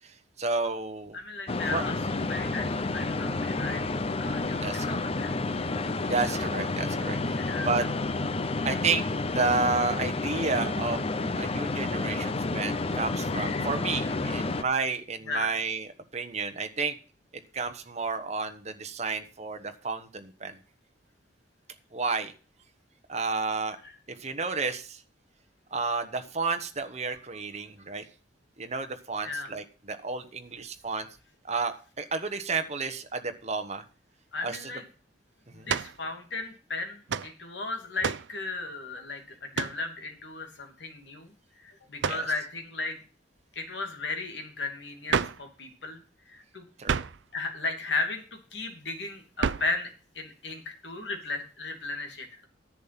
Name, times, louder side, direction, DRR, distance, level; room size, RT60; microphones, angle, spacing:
voice 1, 0.4-1.2 1.7-1.8 4.5-5.0 6.0-7.2 7.6-7.8 8.6-11.0 11.3-16.9 17.5-20.6 21.9-22.3 23.1-23.8 24.1-25.0 25.7-28.0 28.6-31.1 31.5-33.8 34.4-34.7 35.5-35.7 42.1-42.3 46.8-47.1, right 4 dB, 35° right, 8 dB, 1.1 m, -31 dB
voice 2, 1.1-3.8 4.2-5.3 7.4-7.8 14.5-14.6 15.3-15.5 23.8-23.9 29.2-29.5 34.3-34.8 35.5-43.0 43.5-46.6 47.3-52.5, left 3 dB, 70° left, 4 dB, 2.6 m, -35 dB
sound 1, 1.5-14.6, left 3 dB, 35° left, 0.7 m, -30 dB
sound 2, 35.7-36.0 37.1-37.3 38.0-38.3 39.5-39.8 42.0-42.3 45.1-45.5 46.8-47.2 49.4-49.8, right 6 dB, 75° right, 0.5 m, -29 dB
10.5 x 7.3 x 5.9 m, 0.37 s
head